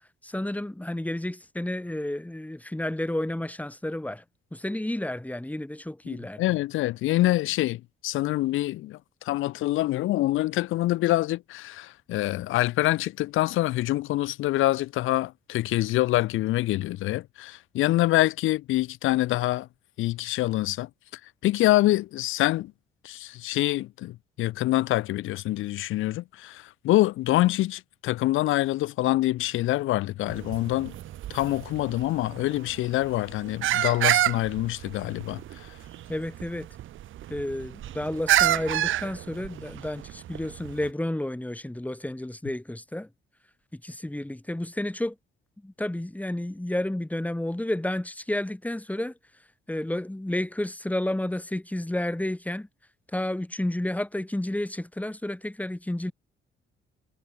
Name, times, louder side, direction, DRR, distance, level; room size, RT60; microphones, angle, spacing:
voice 1, 0.2-4.2 4.5-6.4 36.1-36.7 37.3-43.1 43.7-45.2 45.6-49.1 49.7-52.7 53.1-56.1, left 1 dB, 5° left, 5.3 m, -31 dB
voice 2, 6.1-19.7 20.0-20.9 21.4-22.7 23.0-31.0 31.3-35.7, left 16 dB, 90° left, 1.9 m, -25 dB
sound 1, 30.3-40.9, right 13 dB, 80° right, 4.5 m, -29 dB
cardioid pair, 90°, 20 cm